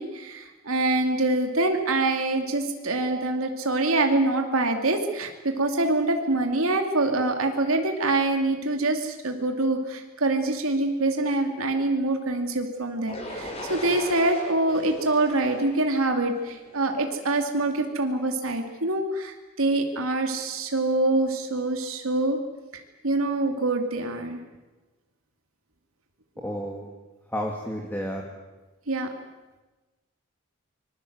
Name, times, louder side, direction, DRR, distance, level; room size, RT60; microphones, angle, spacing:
voice 1, 0.0-22.4 23.0-24.4 28.9-29.1, right 2 dB, 80° right, 4 dB, 2.5 m, -25 dB
sound 1, 13.1-17.0, left 1 dB, 30° left, 5.7 m, -38 dB
voice 2, 26.4-26.9 27.3-28.2, equal, 10° left, 0 dB, 2.4 m, -31 dB
25.0 x 21.5 x 8.0 m, 1.2 s
head